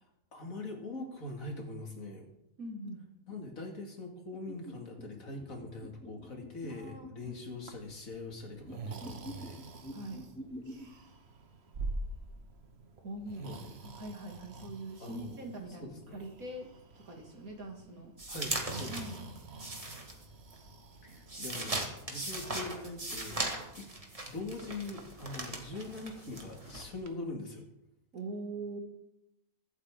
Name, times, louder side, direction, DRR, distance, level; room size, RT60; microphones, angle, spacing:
voice 1, 0.3-2.3 3.3-9.6 13.4-13.7 15.0-15.5 15.8-16.2 18.3-19.2 21.0-23.4 23.8-23.9 24.3-27.7, left 2 dB, 75° left, 2 dB, 2.7 m, -42 dB
voice 2, 2.6-3.0 6.7-7.4 9.9-10.3 13.0-13.5 13.8-16.7 17.0-18.1 18.9-19.1 28.1-28.8, right 2 dB, 85° right, 1 dB, 2.9 m, -43 dB
sound 1, 4.3-7.3 8.6-10.8, equal, 10° left, 2.5 m, -47 dB
Breathing, 7.5-27.2, right 2 dB, 50° right, 1.4 m, -48 dB
sound 2, 18.2-20.6 20.9-26.8, right 2 dB, 25° right, 1.8 m, -39 dB
23.0 x 8.2 x 3.7 m, 0.85 s
omnidirectional pair, 1.4 m